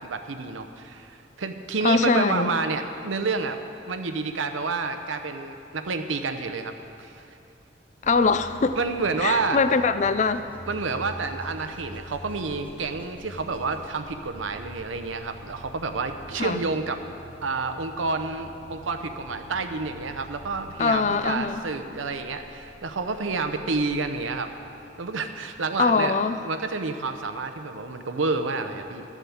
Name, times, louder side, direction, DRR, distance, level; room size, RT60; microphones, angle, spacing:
voice 1, 0.0-3.6 3.9-6.7 7.0-7.2 8.8-9.6 10.7-17.0 17.4-24.5 25.0-26.2 26.4-29.0, right 4 dB, 90° right, 8 dB, 0.7 m, -29 dB
voice 2, 1.8-2.5 8.0-8.8 9.2-10.4 16.4-16.6 20.8-21.6 25.8-26.4, left 4 dB, 40° left, 11 dB, 0.4 m, -22 dB
sound 1, 8.0-25.8, equal, 10° left, 1.1 m, -46 dB
11.5 x 7.3 x 7.2 m, 2.7 s
head